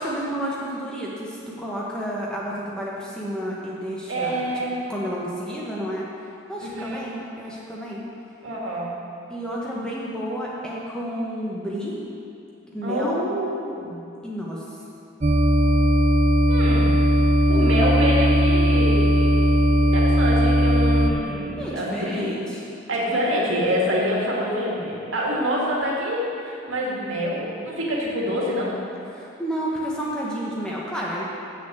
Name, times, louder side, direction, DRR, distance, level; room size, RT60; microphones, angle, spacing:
voice 1, 0.0-4.5 4.9-6.1 6.5-8.0 9.3-12.0 12.7-13.2 14.2-14.8 17.5-18.1 21.6-22.6 23.0-23.3 29.1-31.2, equal, 5° left, -6 dB, 1.2 m, -31 dB
voice 2, 4.1-4.8 6.6-7.0 8.4-8.9 12.8-14.0 16.5-16.9 17.5-19.6 19.8-22.4 22.9-28.8, equal, 75° right, -4 dB, 2.0 m, -26 dB
sound 1, 15.2-21.1, equal, 35° right, 0.5 m, -18 dB
6.8 x 6.6 x 7.8 m, 2.6 s
head